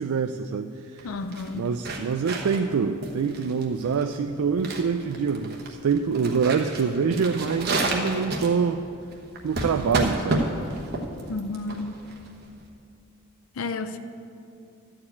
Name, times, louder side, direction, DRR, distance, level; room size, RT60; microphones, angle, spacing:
voice 1, 0.0-1.1 1.5-8.9 9.4-10.5, right 5 dB, 90° right, 6 dB, 0.4 m, -25 dB
voice 2, 1.0-1.7 11.3-12.0 13.5-14.0, left 3 dB, 75° left, 9 dB, 0.5 m, -31 dB
sound 1, 1.0-12.6, right 2 dB, 45° right, 1.1 m, -31 dB
12.5 x 4.7 x 8.4 m, 2.6 s
head